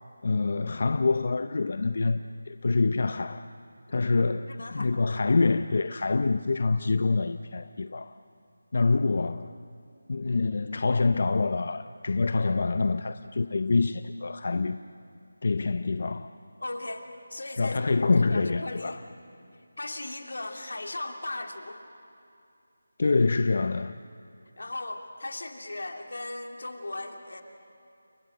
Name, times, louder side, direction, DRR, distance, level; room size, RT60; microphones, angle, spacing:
voice 1, 0.2-3.5 3.9-8.1 8.7-9.5 10.1-14.8 15.4-16.3 17.6-19.0 23.0-24.0, left 3 dB, 45° left, 0.5 m, -26 dB
voice 2, 4.5-5.2 16.6-19.0 19.8-21.8 24.6-27.4, left 2 dB, 80° left, 2.9 m, -38 dB
29.0 x 22.0 x 7.8 m
figure-of-eight pair, 175°, 0 cm